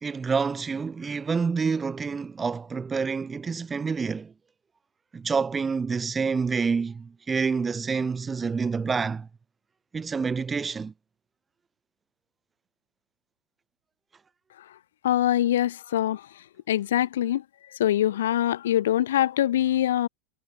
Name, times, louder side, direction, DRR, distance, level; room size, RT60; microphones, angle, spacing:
voice 1, 0.0-4.3 5.1-9.3 9.9-10.9, right 5 dB, 20° right, 2.1 m, -28 dB
voice 2, 15.0-16.2 16.7-17.4 17.8-20.1, left 12 dB, 80° left, 1.5 m, -23 dB
hypercardioid pair, 95°, 0 cm